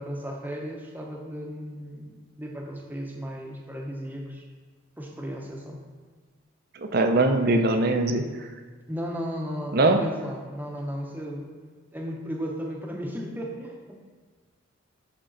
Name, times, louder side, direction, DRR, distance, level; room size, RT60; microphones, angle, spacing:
voice 1, 0.0-4.4 5.0-5.8 8.9-11.6 11.9-14.1, equal, 10° right, 0 dB, 0.8 m, -35 dB
voice 2, 6.8-8.3 9.7-10.0, right 2 dB, 45° right, 6 dB, 0.6 m, -21 dB
10.5 x 3.7 x 3.9 m, 1.5 s
head